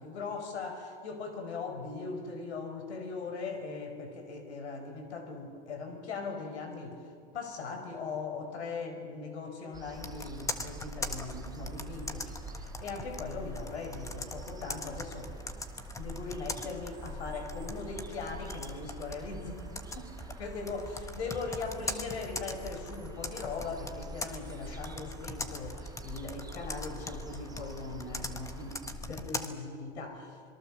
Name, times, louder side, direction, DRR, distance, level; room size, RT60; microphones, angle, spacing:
voice 1, 0.0-15.3 16.0-20.1 20.4-20.9 21.1-30.5, left 4 dB, 85° left, 7 dB, 4.7 m, -40 dB
sound 1, 9.7-28.9, right 5 dB, 10° right, 0.8 m, -47 dB
Computer keyboard, 9.9-29.5, left 2 dB, 10° left, 1.4 m, -41 dB
26.0 x 22.5 x 7.4 m, 2.2 s
hypercardioid pair, 120°, 32 cm